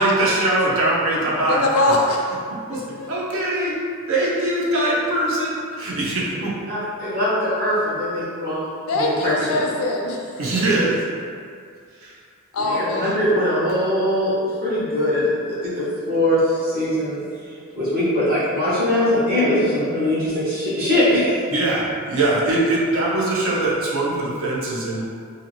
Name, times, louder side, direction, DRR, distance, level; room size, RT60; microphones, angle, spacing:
voice 1, 0.0-1.6 2.7-2.8 3.1-3.7 4.1-6.5 10.4-11.0 12.0-12.1 21.5-25.0, right 2 dB, 65° right, -5 dB, 0.6 m, -21 dB
voice 2, 1.5-2.2 2.7-3.1 8.9-10.2 12.5-13.2, left 2 dB, 70° left, -1 dB, 0.4 m, -22 dB
voice 3, 6.7-8.6 8.9-9.6 12.6-17.2 17.8-21.4, left 1 dB, 45° right, -9 dB, 1.0 m, -21 dB
2.6 x 2.6 x 2.8 m, 2.2 s
head